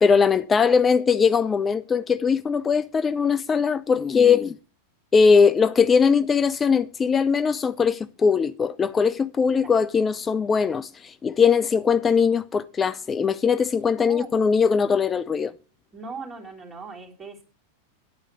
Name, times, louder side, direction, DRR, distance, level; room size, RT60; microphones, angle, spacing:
voice 1, 0.0-4.6 5.1-15.5, left 6 dB, 20° left, 0.4 m, -20 dB
voice 2, 14.0-14.3 15.9-17.4, right 4 dB, 15° right, 3.2 m, -39 dB
9.6 x 4.7 x 6.8 m
figure-of-eight pair, 90°, 0 cm